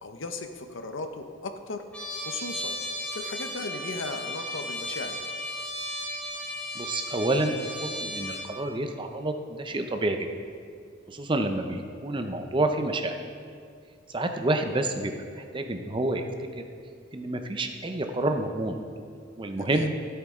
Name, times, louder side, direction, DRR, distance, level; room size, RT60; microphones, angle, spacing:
voice 1, 0.0-1.8 2.3-2.8 3.1-5.2 19.6-19.9, left 3 dB, 75° left, 7 dB, 0.8 m, -36 dB
Trumpet, 1.9-8.5, left 1 dB, 5° left, 2.6 m, -35 dB
voice 2, 6.8-10.2 11.1-13.1 14.1-16.2 16.6-16.7 17.1-18.8 19.4-19.9, right 2 dB, 25° right, 6 dB, 0.6 m, -28 dB
13.5 x 8.1 x 3.7 m, 2.2 s
head